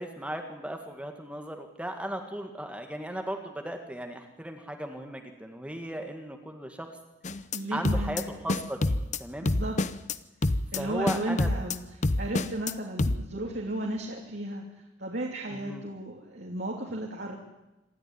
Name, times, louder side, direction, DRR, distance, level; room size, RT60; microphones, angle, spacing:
voice 1, 0.0-6.9 7.3-7.4 7.7-9.5 10.8-11.5 15.5-15.8, right 1 dB, 5° right, 4 dB, 1.9 m, -36 dB
sound 1, 7.2-7.6 7.8-8.2 8.5-9.2 9.5-10.2 10.4-10.8 11.1-11.8 12.0-12.7 13.0-13.2, left 2 dB, 40° left, 0.8 m, -26 dB
voice 2, 7.5-8.2 9.4-9.8 10.7-11.8 12.2-14.6 15.0-17.4, right 1 dB, 65° right, -2 dB, 3.2 m, -34 dB
27.0 x 13.0 x 9.8 m, 0.99 s
head